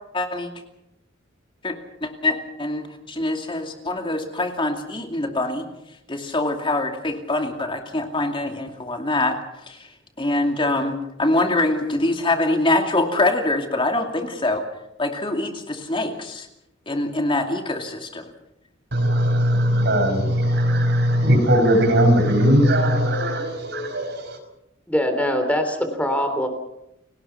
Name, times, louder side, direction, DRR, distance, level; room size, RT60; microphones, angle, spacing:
voice 1, 0.1-0.5 1.6-5.6 6.1-9.4 9.7-9.9 10.2-14.6 15.0-16.5 16.9-18.2, left 2 dB, 25° left, 4 dB, 2.5 m, -24 dB
voice 2, 18.9-24.4, equal, 60° right, 6 dB, 5.3 m, -19 dB
voice 3, 24.9-26.5, equal, 5° left, 6 dB, 3.2 m, -22 dB
29.5 x 19.0 x 5.8 m, 0.83 s
head